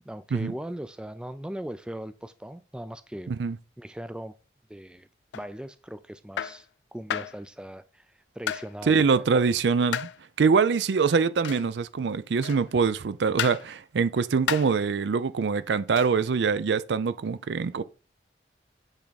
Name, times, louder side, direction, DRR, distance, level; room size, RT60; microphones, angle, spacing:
voice 1, 0.1-3.3 3.8-4.3 4.7-5.1 5.3-6.7 6.9-9.3, right 1 dB, 5° right, 0.3 m, -39 dB
sound 1, 5.3-5.5 6.4-6.6 7.1-7.4 8.5-8.7 9.9-10.2 11.4-11.7 12.4-12.7 13.4-13.7 14.5-14.8 16.0-16.2, left 9 dB, 80° left, 0.3 m, -32 dB
voice 2, 8.9-10.1 10.4-17.8, right 5 dB, 75° right, 0.4 m, -24 dB
8.8 x 3.5 x 4.1 m
head